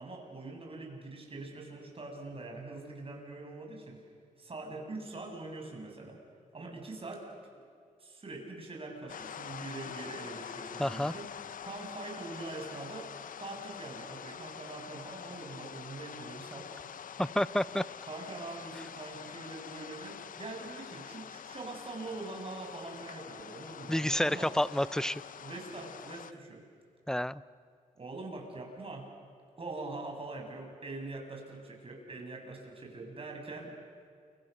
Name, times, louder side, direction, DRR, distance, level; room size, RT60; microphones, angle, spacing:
voice 1, 0.0-4.0 4.4-6.2 6.5-7.6 8.0-11.3 11.6-13.1 13.4-16.7 18.1-24.5 25.4-26.6 28.0-29.1 29.6-33.7, right 2 dB, 40° right, 1 dB, 7.3 m, -43 dB
sound 1, 9.1-26.3, left 8 dB, 70° left, 0.8 m, -46 dB
voice 2, 10.8-11.1 17.2-17.8 23.9-25.2 27.1-27.4, left 1 dB, 5° left, 17 dB, 0.7 m, -29 dB
29.5 x 24.5 x 6.8 m, 2.3 s
cardioid pair, 70°, 15 cm